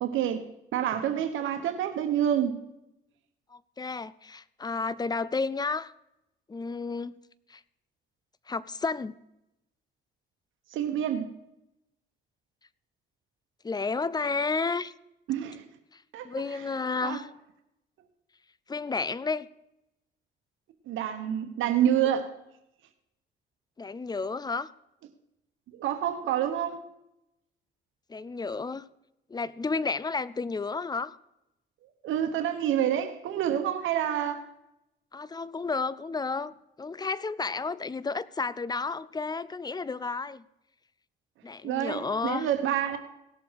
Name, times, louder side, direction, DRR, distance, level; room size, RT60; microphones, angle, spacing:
voice 1, 0.0-0.4 0.7-2.6 10.7-11.3 15.3-15.6 16.1-16.3 17.0-17.2 20.9-22.3 25.7-26.8 32.0-34.5 41.6-43.0, right 10 dB, 85° right, 7 dB, 1.2 m, -27 dB
voice 2, 3.5-5.9 6.5-7.1 7.5-7.6 8.5-9.1 13.6-14.9 15.9-17.3 18.7-19.5 23.8-24.7 28.1-28.8 29.3-31.2 35.1-40.4 41.4-42.5, left 4 dB, 20° left, 18 dB, 0.5 m, -32 dB
17.5 x 7.0 x 4.7 m, 0.86 s
cardioid pair, 90°, 20 cm